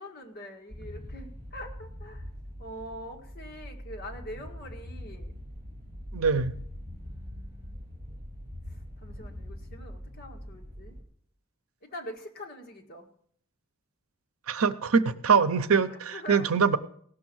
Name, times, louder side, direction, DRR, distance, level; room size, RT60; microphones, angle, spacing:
voice 1, 0.0-2.3 2.6-5.3 6.8-7.8 8.7-10.9 11.8-13.1 15.9-16.5, equal, 45° left, 2 dB, 1.7 m, -44 dB
sound 1, 0.7-11.0, equal, 35° right, 3.5 m, -42 dB
voice 2, 6.1-6.5 14.5-16.8, right 5 dB, 80° right, 12 dB, 0.7 m, -23 dB
16.5 x 6.4 x 6.2 m, 0.63 s
head